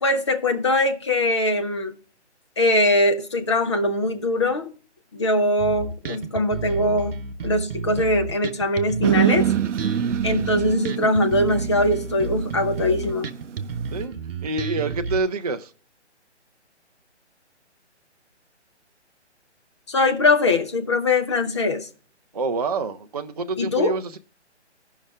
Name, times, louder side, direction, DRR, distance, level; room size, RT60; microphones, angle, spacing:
voice 1, 0.0-1.9 2.6-4.7 5.1-7.1 7.4-9.5 10.2-13.3 19.9-21.9 23.6-24.0, left 1 dB, 25° left, 0.6 m, -21 dB
Bass guitar, 5.6-15.2, right 4 dB, 55° right, 1.0 m, -31 dB
sound 1, 9.0-14.0, right 9 dB, 90° right, 0.5 m, -26 dB
voice 2, 14.4-15.7 22.3-24.2, right 3 dB, 35° right, 0.4 m, -27 dB
14.5 x 5.5 x 3.5 m
figure-of-eight pair, 155°, 35 cm